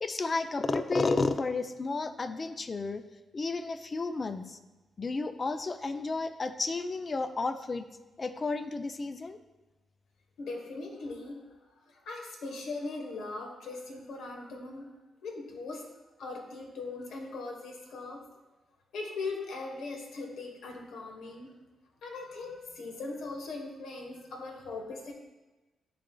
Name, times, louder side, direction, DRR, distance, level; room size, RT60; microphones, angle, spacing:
voice 1, 0.0-3.0 3.3-4.6 5.0-7.9 8.2-9.4, left 3 dB, 35° left, 10 dB, 0.4 m, -32 dB
voice 2, 10.4-15.0 15.2-15.8 16.2-18.2 18.9-21.5 22.0-25.1, left 3 dB, 80° left, 2 dB, 1.1 m, -40 dB
11.0 x 3.8 x 2.3 m, 1.1 s
cardioid pair, 90°, 0 cm